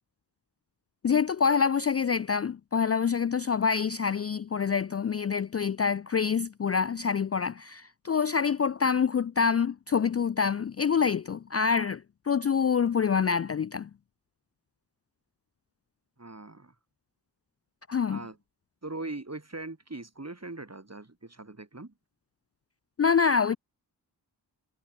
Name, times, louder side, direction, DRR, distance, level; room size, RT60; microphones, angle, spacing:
voice 1, 1.0-13.9 17.9-18.2 23.0-23.6, left 6 dB, 35° left, 0.4 m, -26 dB
voice 2, 16.2-16.7 18.1-18.4 18.8-21.9, right 2 dB, 35° right, 3.9 m, -40 dB
wide cardioid pair, 45°, 42 cm